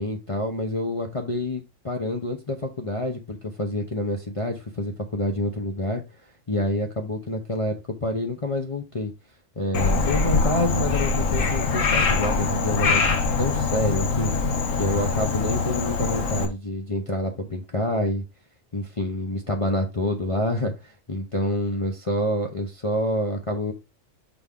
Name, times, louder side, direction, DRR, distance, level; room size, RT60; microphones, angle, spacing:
voice 1, 0.0-6.0 6.5-7.7 8.0-9.1 9.6-13.0 13.4-14.3 14.8-18.2 18.7-23.7, left 1 dB, 30° left, 0.8 m, -27 dB
Frog, 9.7-16.5, left 4 dB, 75° left, 1.4 m, -23 dB
6.2 x 4.7 x 3.7 m
omnidirectional pair, 1.4 m